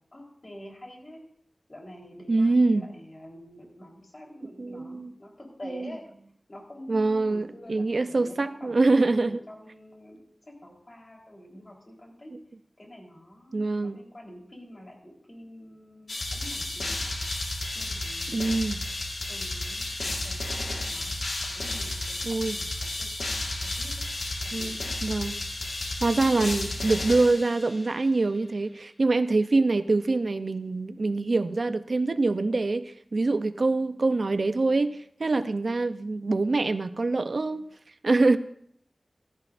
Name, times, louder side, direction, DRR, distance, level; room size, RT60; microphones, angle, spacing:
voice 1, 0.1-1.2 1.7-6.0 6.5-8.3 8.6-10.2 10.5-12.3 12.8-17.1 17.7-18.4 19.3-21.1 21.4-23.9 24.4-24.9, left 1 dB, 40° left, -1 dB, 4.0 m, -47 dB
voice 2, 2.3-2.9 4.6-5.1 5.6-5.9 6.9-9.4 13.5-14.0 18.3-18.8 22.2-22.6 24.5-25.4 26.0-37.6 38.0-38.4, right 3 dB, 70° right, 11 dB, 0.6 m, -25 dB
sound 1, 16.1-28.0, left 2 dB, 85° left, 1.7 m, -32 dB
15.0 x 14.0 x 2.6 m, 0.65 s
wide cardioid pair, 75°, 0 cm